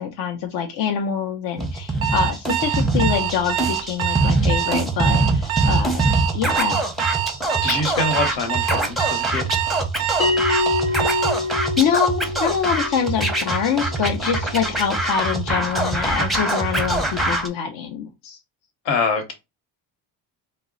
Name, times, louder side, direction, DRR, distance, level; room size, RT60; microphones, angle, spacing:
voice 1, 0.0-6.0 6.3-6.8 11.8-18.4, left 7 dB, 60° left, 0.6 m, -25 dB
Scratching (performance technique), 1.6-17.5, right 2 dB, ahead, 0.6 m, -23 dB
Alarm, 2.0-11.4, right 12 dB, 90° right, 0.5 m, -25 dB
voice 2, 7.6-9.5 18.8-19.3, left 4 dB, 80° left, 1.1 m, -24 dB
Bell, 10.2-15.2, left 3 dB, 30° left, 0.9 m, -27 dB
2.2 x 2.0 x 3.7 m
supercardioid pair, 80°, 45 cm